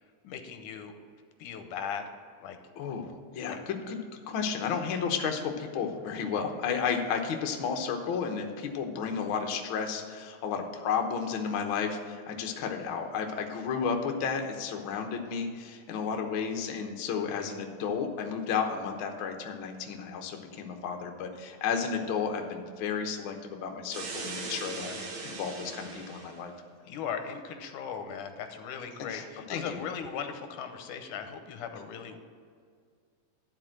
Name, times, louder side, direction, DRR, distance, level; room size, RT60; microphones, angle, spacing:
voice 1, 0.2-1.0 1.4-2.1 2.4-2.6 3.5-3.6 17.3-17.5 24.8-25.4 26.8-32.3, left 7 dB, 90° left, 7 dB, 2.3 m, -38 dB
voice 2, 2.8-4.0 4.3-26.5 29.1-29.8, left 6 dB, 70° left, 3 dB, 1.2 m, -32 dB
sound 1, 23.9-26.4, right 3 dB, 70° right, 2.6 m, -39 dB
11.5 x 4.5 x 7.6 m, 2.1 s
omnidirectional pair, 3.6 m